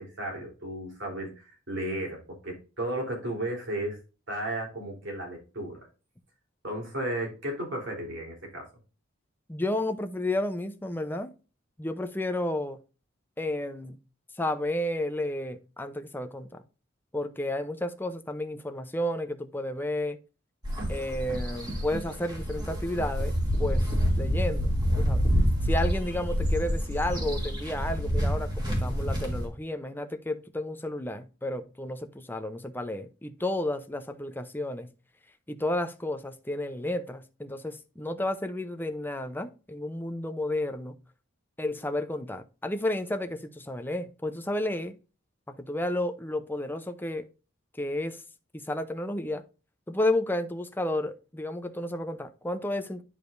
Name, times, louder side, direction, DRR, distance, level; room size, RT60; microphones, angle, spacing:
voice 1, 0.0-4.0 4.3-5.9 6.6-8.7, right 1 dB, 65° right, 3.7 m, -34 dB
voice 2, 9.5-11.3 11.8-12.8 13.4-14.0 14.4-16.6 17.1-20.2 20.9-23.9 24.2-24.7 25.0-25.3 25.6-34.9 35.5-41.0 41.6-45.0 45.5-47.3 47.8-48.2 48.5-49.4 49.9-53.0, left 1 dB, 10° left, 0.7 m, -32 dB
sound 1, 20.6-29.5, equal, 20° right, 2.5 m, -27 dB
10.5 x 5.0 x 2.6 m
head